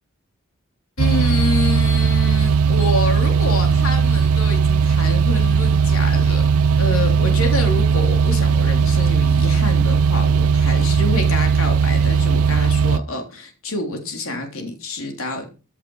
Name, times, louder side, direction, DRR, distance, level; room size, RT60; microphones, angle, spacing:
voice 1, 1.0-6.4 6.8-15.5, left 2 dB, 70° left, 4 dB, 3.4 m, -27 dB
sound 1, 1.0-13.0, right 6 dB, 80° right, 0.6 m, -17 dB
15.0 x 8.5 x 5.5 m, 0.35 s
head